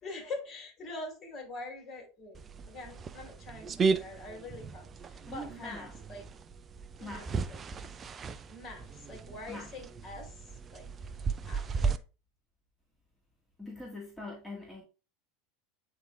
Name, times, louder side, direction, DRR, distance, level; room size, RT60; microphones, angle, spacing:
voice 1, 0.0-2.4 2.7-6.2 7.0-7.6 8.5-10.3 10.7-10.9 11.5-12.0, left 2 dB, 40° left, 4.0 m, -44 dB
sound 1, 2.3-12.0, right 5 dB, 30° right, 0.6 m, -35 dB
voice 2, 5.3-5.9 7.0-7.3 9.5-9.7 13.6-14.8, left 1 dB, 5° left, 2.0 m, -43 dB
8.9 x 3.7 x 3.5 m
hypercardioid pair, 80°, 0 cm